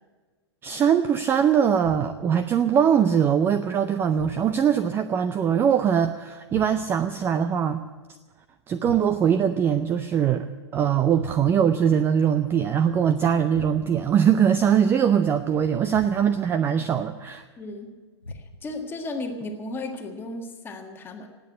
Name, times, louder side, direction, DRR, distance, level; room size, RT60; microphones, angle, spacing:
voice 1, 0.6-7.8 8.7-10.5 10.7-17.4, right 8 dB, 15° right, 11 dB, 0.4 m, -22 dB
sound 1, 1.8-2.4 4.1-4.8 6.5-7.1 8.8-9.5 11.2-11.8 13.5-14.1 15.9-16.5 18.2-18.8, left 2 dB, 90° left, 0.9 m, -41 dB
voice 2, 17.6-17.9 18.6-21.3, left 2 dB, 15° left, 3 dB, 1.6 m, -34 dB
18.5 x 8.4 x 8.7 m, 1.4 s
figure-of-eight pair, 110°, 15 cm